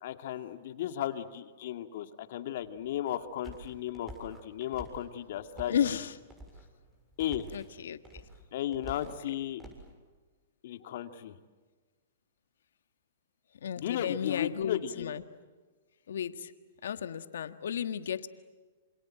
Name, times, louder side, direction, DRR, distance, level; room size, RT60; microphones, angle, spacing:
voice 1, 0.0-6.0 7.2-7.5 8.5-9.6 10.6-11.3 13.8-15.1, left 11 dB, 60° left, 8 dB, 2.2 m, -35 dB
sound 1, 2.6-9.9, right 1 dB, 15° right, 6.9 m, -49 dB
voice 2, 5.7-6.1 7.5-8.0 9.3-9.4 13.6-15.2 16.1-16.5 16.8-18.3, left 8 dB, 75° left, 11 dB, 1.6 m, -33 dB
27.5 x 27.5 x 7.7 m, 1.4 s
hypercardioid pair, 135°, 0 cm